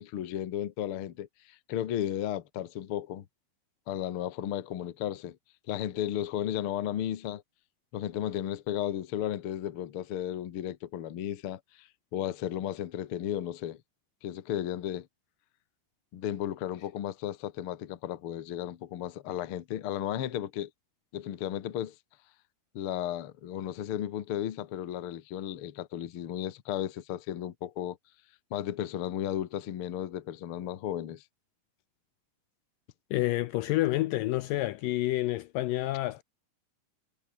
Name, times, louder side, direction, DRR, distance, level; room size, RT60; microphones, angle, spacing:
voice 1, 0.0-3.2 3.9-5.4 5.7-7.4 7.9-13.8 14.2-15.1 16.1-20.7 21.1-21.9 22.7-28.0 28.5-31.2, left 11 dB, 60° left, 1.5 m, -34 dB
voice 2, 33.1-36.2, left 17 dB, 80° left, 2.1 m, -29 dB
omnidirectional pair, 4.4 m